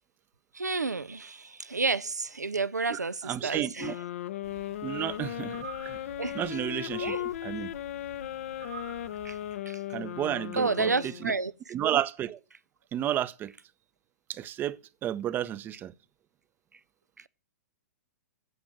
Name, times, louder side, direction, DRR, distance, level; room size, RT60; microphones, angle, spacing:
voice 1, 0.5-3.9 6.2-6.4 7.0-7.2 9.2-9.4 9.7-9.8 10.6-11.7, right 4 dB, 80° right, 0.7 m, -30 dB
voice 2, 2.9-3.9 4.8-6.0 6.3-7.7 9.9-11.3 11.7-12.4 12.9-13.5 14.3-15.9, right 11 dB, 20° right, 0.7 m, -32 dB
sound 1, 3.8-11.5, left 13 dB, 50° left, 0.7 m, -37 dB
sound 2, 4.4-9.5, right 4 dB, 65° right, 3.0 m, -48 dB
16.0 x 6.2 x 7.7 m
figure-of-eight pair, 110°, 9 cm